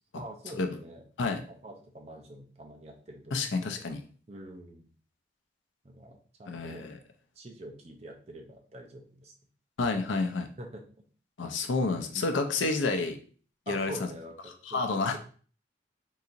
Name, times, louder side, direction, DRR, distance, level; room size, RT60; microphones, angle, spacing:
voice 1, 0.2-1.0 1.5-3.8 4.3-4.9 5.8-6.8 7.4-9.3 10.6-10.8 13.7-15.2, right 1 dB, 35° right, 3 dB, 0.5 m, -46 dB
voice 2, 3.3-4.0 6.5-7.0 9.8-10.5 11.4-13.2 13.7-14.1 14.7-15.2, left 3 dB, 90° left, 6 dB, 0.5 m, -29 dB
3.8 x 2.8 x 2.5 m, 0.42 s
head